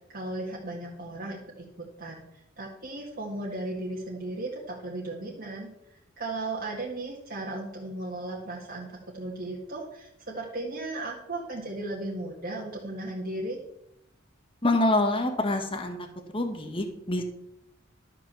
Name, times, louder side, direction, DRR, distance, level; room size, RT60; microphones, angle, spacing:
voice 1, 0.1-13.6, right 2 dB, 50° right, -4 dB, 1.9 m, -36 dB
voice 2, 14.6-16.0 16.3-17.2, left 2 dB, 25° left, 5 dB, 1.4 m, -26 dB
12.5 x 6.0 x 7.0 m, 0.82 s
head